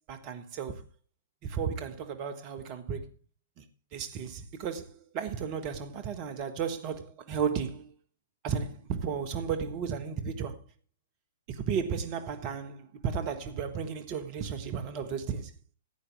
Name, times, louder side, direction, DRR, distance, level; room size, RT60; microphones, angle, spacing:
voice 1, 0.1-0.8 1.4-3.1 3.6-3.7 3.9-7.9 8.4-10.6 11.5-15.5, right 6 dB, 35° right, 1.5 m, -34 dB
16.0 x 8.8 x 3.5 m
figure-of-eight pair, 115°, 0 cm